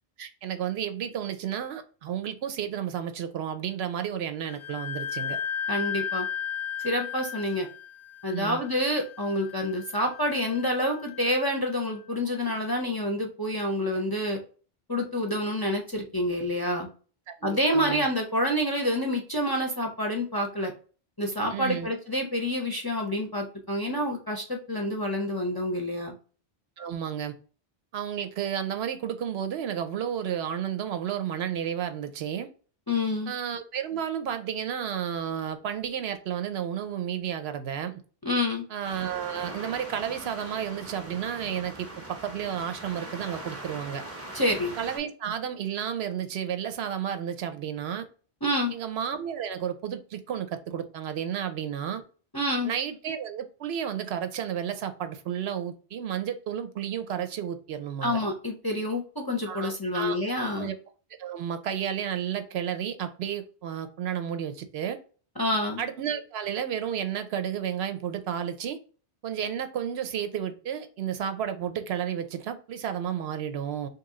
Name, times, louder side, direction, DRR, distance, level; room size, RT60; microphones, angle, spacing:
voice 1, 0.2-5.4 8.3-8.6 17.3-18.1 21.5-21.9 26.8-27.3 27.9-32.5 33.3-38.0 38.7-44.0 44.8-48.1 48.7-52.0 52.6-58.2 59.5-60.2 60.6-60.7 61.2-65.0 65.8-68.8 69.2-73.9, right 9 dB, 75° right, 0.8 m, -32 dB
Wind instrument woodwind instrument, 4.5-11.9, left 8 dB, 90° left, 0.9 m, -36 dB
voice 2, 5.7-6.3 6.8-7.7 8.2-14.4 14.9-16.9 17.4-20.7 21.2-26.1 32.9-33.3 38.2-38.6 44.3-44.7 48.4-48.7 52.3-52.7 58.0-60.7 65.4-65.8, left 1 dB, 25° left, 0.5 m, -28 dB
sound 1, 38.8-45.0, right 1 dB, 15° right, 0.6 m, -41 dB
3.0 x 2.9 x 3.6 m
omnidirectional pair, 1.1 m